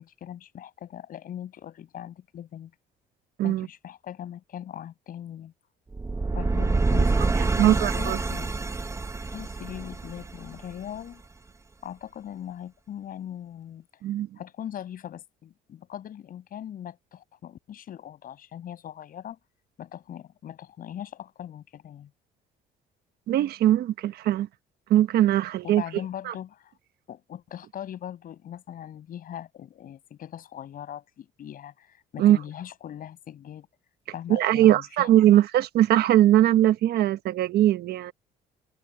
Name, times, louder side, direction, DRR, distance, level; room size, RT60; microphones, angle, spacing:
voice 1, 0.0-2.7 3.4-5.5 6.3-8.5 9.3-11.2 11.8-13.8 14.4-19.4 19.8-22.1 25.6-26.7 27.1-33.7 34.1-35.1, left 10 dB, 55° left, 7.6 m, -40 dB
sound 1, 5.9-11.0, right 3 dB, 15° right, 1.1 m, -26 dB
voice 2, 7.4-8.2 14.0-14.3 23.3-24.5 24.9-25.8 26.2-26.3 32.2-32.4 34.3-38.1, right 13 dB, 70° right, 1.2 m, -21 dB
cardioid pair, 110°, 17 cm